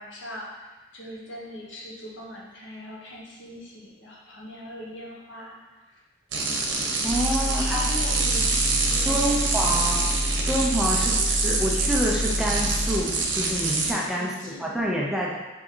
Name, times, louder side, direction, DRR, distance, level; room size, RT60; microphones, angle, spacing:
voice 1, 0.0-6.0 7.3-9.8 14.0-14.8, equal, 85° left, -4 dB, 1.1 m, -41 dB
sound 1, 6.3-13.9, right 3 dB, 90° right, 0.7 m, -26 dB
voice 2, 7.0-7.8 9.1-10.0 10.5-15.4, equal, 5° right, -4 dB, 0.5 m, -27 dB
sound 2, 7.1-13.0, equal, 55° left, 0.6 m, -29 dB
4.0 x 3.4 x 3.7 m, 1.2 s
head